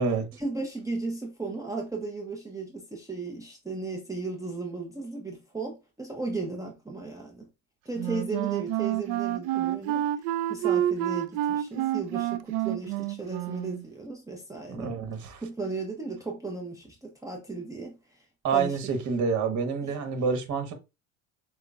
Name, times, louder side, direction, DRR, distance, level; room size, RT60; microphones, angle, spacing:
voice 1, 0.3-7.5 7.9-10.0 10.5-14.9 15.4-18.2 18.5-18.8, right 3 dB, 10° right, 0.8 m, -35 dB
Wind instrument woodwind instrument, 8.0-13.9, right 13 dB, 60° right, 0.5 m, -28 dB
voice 2, 14.7-15.4 18.4-20.7, right 5 dB, 45° right, 1.2 m, -27 dB
6.6 x 2.3 x 2.4 m
hypercardioid pair, 75°, 41 cm